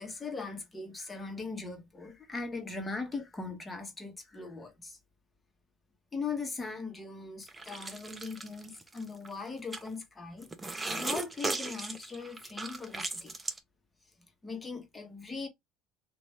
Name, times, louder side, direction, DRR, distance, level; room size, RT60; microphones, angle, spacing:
voice 1, 0.0-5.0 6.1-10.5 10.9-13.3 14.4-15.5, left 4 dB, 20° left, 1.2 m, -39 dB
sound 1, 7.5-9.3 9.7-9.9 10.4-13.6, right 3 dB, 20° right, 0.7 m, -37 dB
3.0 x 2.6 x 3.2 m
supercardioid pair, 80°, 0 cm